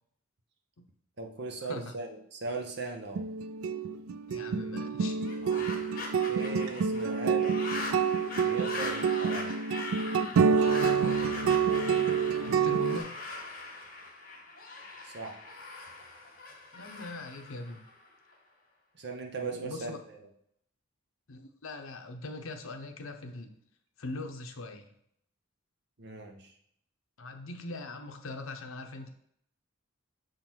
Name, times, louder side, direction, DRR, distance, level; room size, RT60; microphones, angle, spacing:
voice 1, 1.2-3.3 6.3-7.6 8.4-9.5 15.0-15.5 18.9-20.2 26.0-26.5, right 3 dB, 55° right, 3 dB, 1.0 m, -39 dB
sound 1, 3.2-13.0, right 6 dB, 85° right, 0.3 m, -28 dB
voice 2, 4.3-5.2 12.4-13.1 16.7-17.8 19.4-20.0 21.3-23.5 24.0-24.9 27.2-29.1, left 2 dB, 80° left, 6 dB, 0.8 m, -41 dB
sound 2, 5.2-18.3, left 2 dB, 40° left, 1.6 m, -41 dB
6.8 x 3.9 x 4.4 m, 0.71 s
head